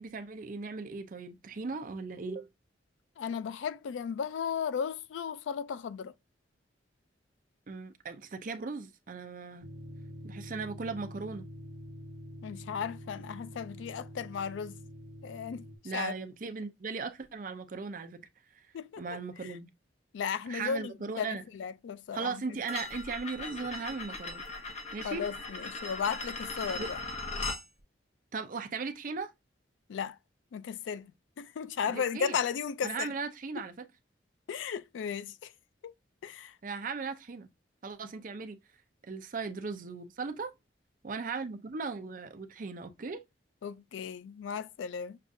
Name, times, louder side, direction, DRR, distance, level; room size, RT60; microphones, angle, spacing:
voice 1, 0.0-2.5 7.7-9.7 10.2-11.5 15.8-18.2 19.0-19.7 20.5-21.4 22.1-24.4 24.9-25.3 26.8-26.9 28.3-29.3 31.9-32.4 32.8-33.8 36.6-37.5 37.8-38.6 39.0-40.5 41.0-43.2, right 4 dB, 45° right, 0.5 m, -37 dB
voice 2, 3.2-6.1 12.4-14.8 15.2-15.7 15.9-16.1 18.7-19.6 20.1-22.6 25.0-27.0 29.9-30.2 30.5-31.1 31.4-33.1 33.6-33.7 34.5-35.5 35.8-35.9 36.2-36.6 43.6-45.2, left 7 dB, 85° left, 0.3 m, -35 dB
sound 1, 9.6-15.8, left 1 dB, 80° right, 1.0 m, -46 dB
sound 2, 22.7-27.6, left 2 dB, 35° left, 0.6 m, -39 dB
6.5 x 2.4 x 2.6 m
head